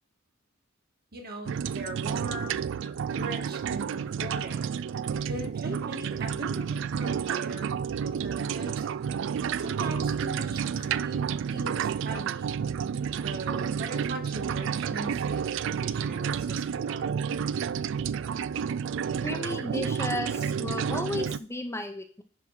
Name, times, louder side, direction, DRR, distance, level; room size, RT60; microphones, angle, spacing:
voice 1, 1.1-2.7 3.1-4.7 5.3-7.7 8.0-8.9 9.6-12.6 13.2-17.1, right 2 dB, 50° right, 3 dB, 1.7 m, -40 dB
sound 1, 1.4-21.4, right 7 dB, 65° right, 0.3 m, -30 dB
voice 2, 19.2-22.2, left 2 dB, 15° left, 6 dB, 0.7 m, -34 dB
10.5 x 3.7 x 5.7 m, 0.42 s
head